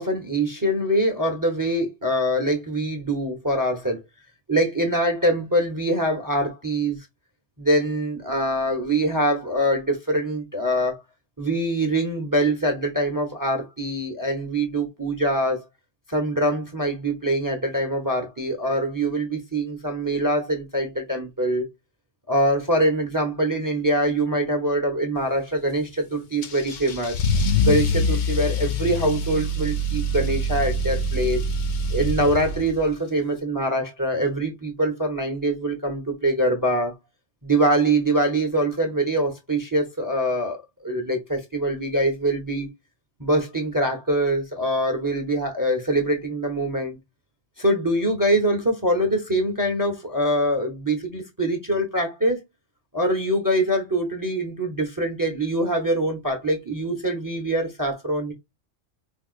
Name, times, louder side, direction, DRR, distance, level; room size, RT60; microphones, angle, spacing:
voice 1, 0.0-4.0 4.5-7.0 7.6-11.0 11.4-15.7 16.1-21.7 22.3-27.1 27.6-31.4 31.9-36.9 37.4-42.7 43.2-47.0 47.6-52.4 52.9-58.3, right 1 dB, 20° right, 0.7 m, -24 dB
Car / Engine starting / Accelerating revving vroom, 26.4-32.9, left 1 dB, 60° left, 0.5 m, -25 dB
4.4 x 2.3 x 2.4 m
omnidirectional pair, 1.3 m